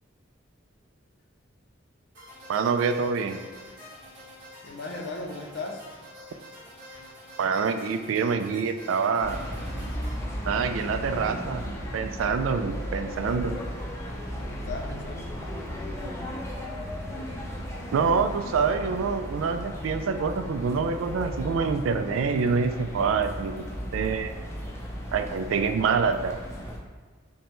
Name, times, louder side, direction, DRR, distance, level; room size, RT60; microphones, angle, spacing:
sound 1, 2.1-10.1, left 1 dB, 60° right, 1.5 m, -47 dB
voice 1, 2.5-3.4 7.4-9.4 10.5-11.6 11.9-13.5 17.9-23.6 23.9-24.3 25.1-26.4, right 5 dB, 90° right, 8 dB, 0.3 m, -26 dB
voice 2, 4.6-5.8 14.3-15.3, left 3 dB, 60° left, 1 dB, 0.6 m, -37 dB
sound 2, 9.2-26.8, equal, 15° left, 0.5 m, -35 dB
5.3 x 2.2 x 3.0 m, 1.4 s
head